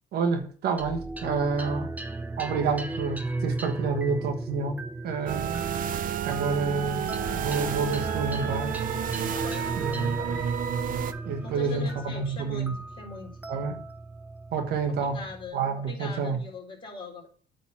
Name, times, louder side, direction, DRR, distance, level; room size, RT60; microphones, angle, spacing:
voice 1, 0.1-1.9 2.4-5.6 6.3-8.8 9.8-10.2 11.2-12.7 13.5-13.8 14.5-15.2 15.5-16.4, right 5 dB, 70° right, 1.4 m, -29 dB
sound 1, 0.8-15.5, right 2 dB, 10° right, 0.9 m, -36 dB
sound 2, 5.3-11.1, right 9 dB, 55° right, 0.6 m, -31 dB
voice 2, 9.3-10.5 11.4-13.4 14.9-17.3, left 4 dB, 30° left, 3.5 m, -41 dB
8.6 x 4.1 x 5.7 m
cardioid pair, 110°, 17 cm